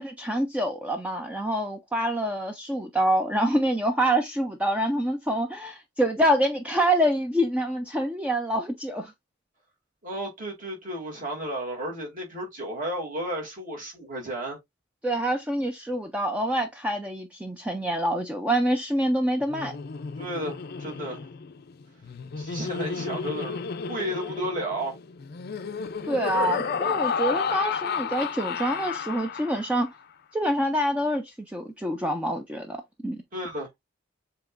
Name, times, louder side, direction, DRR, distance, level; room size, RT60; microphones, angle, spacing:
voice 1, 0.0-9.1 15.0-19.7 26.0-29.9 30.3-32.8 33.0-33.2, right 1 dB, 5° right, 0.4 m, -26 dB
voice 2, 10.0-14.6 20.2-21.3 22.4-25.0 33.3-33.7, right 1 dB, 40° right, 2.5 m, -33 dB
Laughter, 19.4-29.9, left 5 dB, 50° left, 0.4 m, -32 dB
7.3 x 2.9 x 2.5 m
head